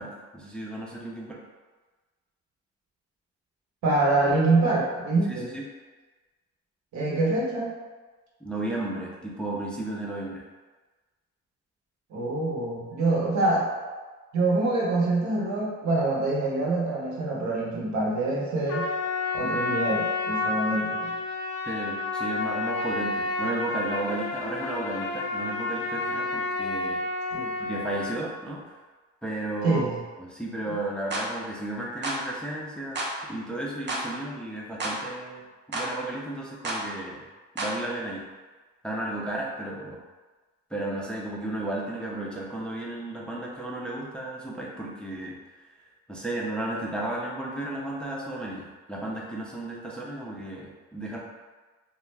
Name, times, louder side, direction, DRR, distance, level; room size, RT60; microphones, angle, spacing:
voice 1, 0.0-1.4 5.3-5.7 8.4-10.4 21.7-27.0 27.6-28.8 29.2-29.8 30.2-37.3 37.5-38.3 38.8-40.0 40.7-45.4 46.1-51.2, right 1 dB, 5° left, -3 dB, 0.4 m, -34 dB
voice 2, 3.8-5.5 6.9-7.7 12.1-13.7 14.3-18.9 19.3-21.1 27.3-27.5 29.6-30.0, right 2 dB, 70° right, -4 dB, 0.8 m, -25 dB
Trumpet, 18.7-28.2, left 3 dB, 85° left, 0.5 m, -30 dB
sound 1, 31.1-31.3 32.0-32.2 33.0-33.1 33.9-34.1 34.8-35.0 35.7-35.9 36.7-36.8 37.6-37.8, right 1 dB, 35° right, 0.6 m, -30 dB
2.3 x 2.1 x 3.1 m, 1.3 s
cardioid pair, 90°, 30 cm